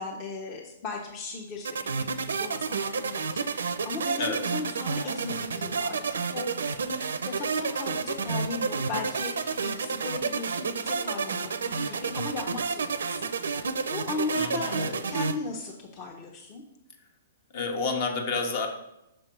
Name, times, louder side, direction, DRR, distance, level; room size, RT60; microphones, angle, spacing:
voice 1, 0.0-13.5 13.9-16.6, left 3 dB, 35° left, -1 dB, 0.9 m, -37 dB
sound 1, 1.6-15.3, right 5 dB, 80° right, 0.4 m, -30 dB
voice 2, 14.3-14.8 17.5-18.7, left 4 dB, 50° left, 4 dB, 1.2 m, -29 dB
6.0 x 3.3 x 5.8 m, 0.86 s
hypercardioid pair, 130°, 0 cm